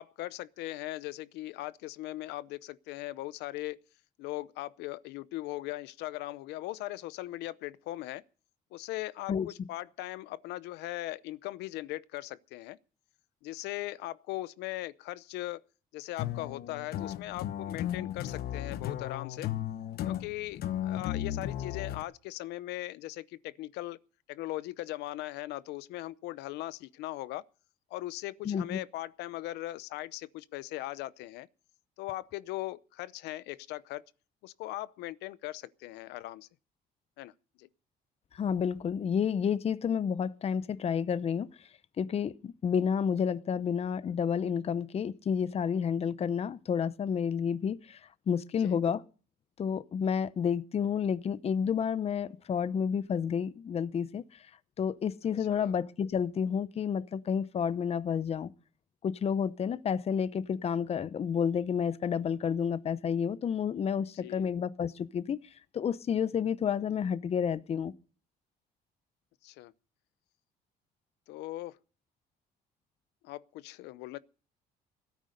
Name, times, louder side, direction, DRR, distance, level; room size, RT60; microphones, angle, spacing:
voice 1, 0.0-3.8 4.2-8.2 8.7-12.8 13.4-15.6 15.9-19.5 20.0-24.0 24.3-27.4 27.9-31.5 32.0-34.0 34.4-36.5 37.2-37.3 37.6-37.7 48.6-48.8 55.5-55.7 64.2-64.5 69.4-69.7 71.3-71.8 73.2-74.2, left 17 dB, 90° left, 0.7 m, -39 dB
sound 1, 16.2-22.0, left 11 dB, 70° left, 1.1 m, -35 dB
voice 2, 28.4-28.8 38.3-41.7 42.0-48.0 48.3-49.0 49.6-54.5 54.8-58.5 59.0-67.9, left 7 dB, 35° left, 0.7 m, -30 dB
17.0 x 9.4 x 6.5 m
cardioid pair, 110°, 17 cm